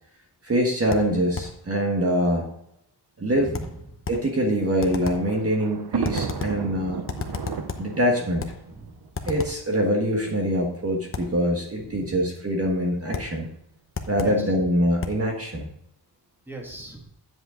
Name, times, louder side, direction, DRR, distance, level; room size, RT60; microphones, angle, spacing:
voice 1, 0.4-2.5 3.2-3.5 4.1-7.0 7.8-8.4 9.2-13.5 14.1-15.7, equal, 35° right, 0 dB, 1.4 m, -24 dB
sound 1, 0.9-1.6 3.5-4.3 4.8-5.3 6.0-6.7 7.1-8.0 8.4-8.7 9.1-9.7 11.1-11.4 13.1-13.4 13.9-14.5 15.0-15.3, left 4 dB, 30° left, 0.9 m, -33 dB
voice 2, 3.3-4.0 6.5-6.8 8.7-9.0 11.8-12.2 14.2-14.5 16.5-17.0, right 1 dB, 5° right, 0 dB, 1.8 m, -39 dB
Thunder, 4.5-9.8 10.6-10.7 11.0-11.1 12.1-12.4, right 6 dB, 65° right, 0.9 m, -34 dB
9.4 x 7.9 x 3.8 m, 0.77 s
wide cardioid pair, 170°, 41 cm